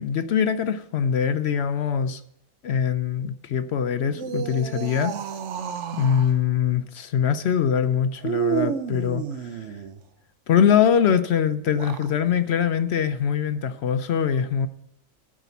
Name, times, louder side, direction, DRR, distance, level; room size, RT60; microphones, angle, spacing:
voice 1, 0.0-2.2 2.6-5.1 5.9-9.8 10.5-14.7, left 8 dB, 60° left, 0.8 m, -23 dB
sound 1, 4.1-6.3 8.2-10.0 11.6-12.1, right 8 dB, 65° right, 1.0 m, -30 dB
13.0 x 5.0 x 6.9 m
omnidirectional pair, 1.4 m